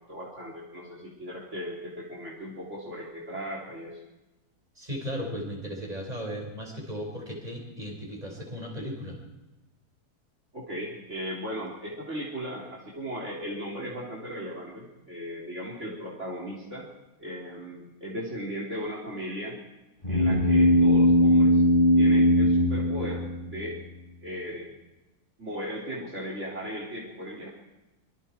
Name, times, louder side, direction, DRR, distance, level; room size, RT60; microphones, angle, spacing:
voice 1, 0.1-4.0 10.5-16.9 17.2-19.5 20.1-21.6 22.0-23.8 24.2-24.7 25.4-27.5, equal, 45° right, -3 dB, 4.2 m, -37 dB
voice 2, 4.8-9.2, equal, 25° right, 1 dB, 5.4 m, -36 dB
sound 1, 20.0-23.7, left 1 dB, 30° left, 4.2 m, -20 dB
26.0 x 24.0 x 4.6 m, 1.0 s
omnidirectional pair, 1.7 m